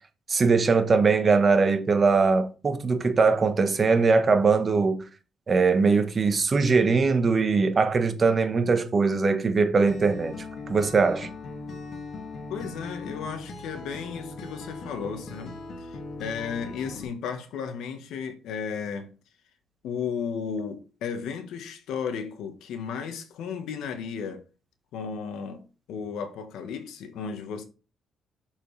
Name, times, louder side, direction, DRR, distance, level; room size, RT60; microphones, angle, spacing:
voice 1, 0.3-5.1 5.5-11.3, right 4 dB, 40° right, 1.2 m, -21 dB
Acoustic guitar, 9.9-17.0, left 3 dB, 55° left, 1.6 m, -39 dB
voice 2, 12.5-19.1 19.8-24.4 24.9-27.6, left 6 dB, 85° left, 1.2 m, -34 dB
6.7 x 6.0 x 3.3 m
cardioid pair, 90°, 0 cm